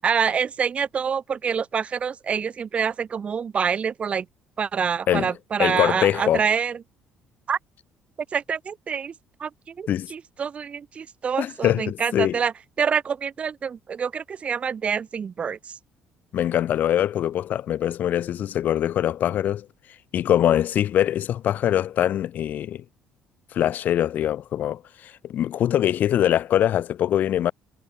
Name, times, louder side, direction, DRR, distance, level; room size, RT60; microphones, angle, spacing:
voice 1, 0.0-4.2 4.6-6.8 7.5-7.6 8.3-9.1 9.4-12.5 12.8-15.6, right 6 dB, 35° right, 6.7 m, -26 dB
voice 2, 5.6-6.4 9.9-10.1 11.4-12.4 16.3-19.7 20.1-22.8 23.5-27.5, left 11 dB, 55° left, 5.6 m, -23 dB
cardioid pair, 120°, 3 cm